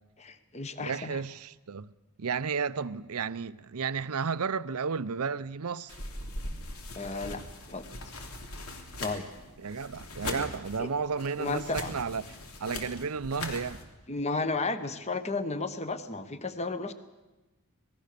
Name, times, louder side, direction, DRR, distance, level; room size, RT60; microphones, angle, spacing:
voice 1, 0.2-1.2 6.9-7.4 7.7-7.8 9.0-9.3 10.8-10.9 11.4-11.9 14.1-16.9, left 3 dB, 30° left, 1.2 m, -33 dB
voice 2, 0.8-1.9 2.2-6.0 9.6-13.8, right 5 dB, 80° right, 0.7 m, -33 dB
sound 1, 5.9-13.8, left 2 dB, 75° left, 3.2 m, -41 dB
26.5 x 19.0 x 6.8 m
head